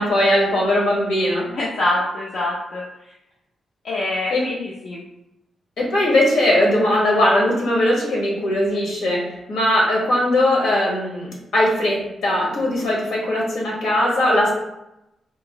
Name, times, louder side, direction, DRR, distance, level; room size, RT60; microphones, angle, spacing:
voice 1, 0.0-1.4 4.3-4.5 5.8-14.5, left 1 dB, 75° left, -4 dB, 1.5 m, -19 dB
voice 2, 1.5-2.9 3.8-5.0, left 1 dB, 55° left, -6 dB, 0.7 m, -25 dB
3.7 x 3.1 x 3.0 m, 0.90 s
wide cardioid pair, 155°, 0 cm